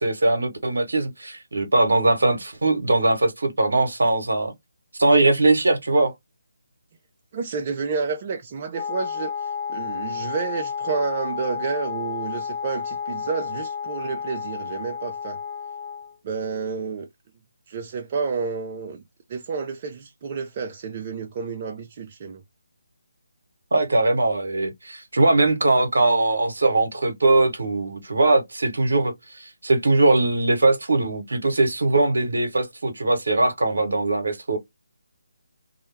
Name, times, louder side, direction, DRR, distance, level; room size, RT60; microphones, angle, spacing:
voice 1, 0.0-4.5 5.0-6.1 23.7-34.6, right 2 dB, 70° right, 0.9 m, -21 dB
voice 2, 7.3-15.4 16.2-17.1 17.7-19.0 19.3-22.4, right 5 dB, 35° right, 0.4 m, -30 dB
Wind instrument woodwind instrument, 8.7-16.2, left 6 dB, 30° left, 0.4 m, -31 dB
2.2 x 2.1 x 3.1 m
figure-of-eight pair, 150°, 0 cm